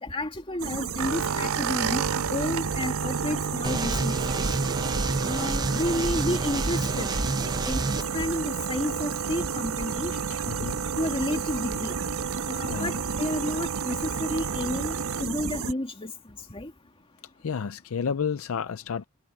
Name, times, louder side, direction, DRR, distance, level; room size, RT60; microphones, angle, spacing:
voice 1, 0.0-2.0 2.3-4.4 5.3-7.1 7.6-7.8 8.1-10.1 10.6-12.0 12.4-16.1 16.5-16.7, left 1 dB, 25° left, 2.5 m, -31 dB
sound 1, 0.6-15.7, right 5 dB, 70° right, 1.3 m, -33 dB
sound 2, 1.0-15.2, right 7 dB, 90° right, 0.6 m, -33 dB
sound 3, 3.6-8.0, right 2 dB, 20° right, 0.7 m, -29 dB
voice 2, 10.1-10.8 12.7-13.0 17.4-19.0, left 6 dB, 70° left, 0.5 m, -31 dB
head